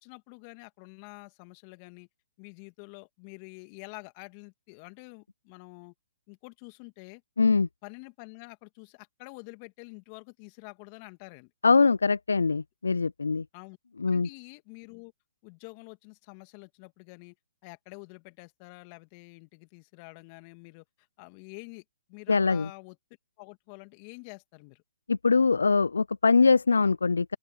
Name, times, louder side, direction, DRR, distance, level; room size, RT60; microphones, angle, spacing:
voice 1, 0.0-2.1 2.4-5.9 6.3-7.2 7.8-11.5 13.5-13.8 14.1-15.1 15.4-17.3 17.6-20.8 21.2-21.8 22.1-23.0 23.4-24.8, left 32 dB, 35° left, 2.6 m, -47 dB
voice 2, 7.4-7.7 11.6-13.5 14.0-14.3 22.3-22.7 25.1-27.4, left 4 dB, 80° left, 0.4 m, -23 dB
open air
hypercardioid pair, 130°, 0 cm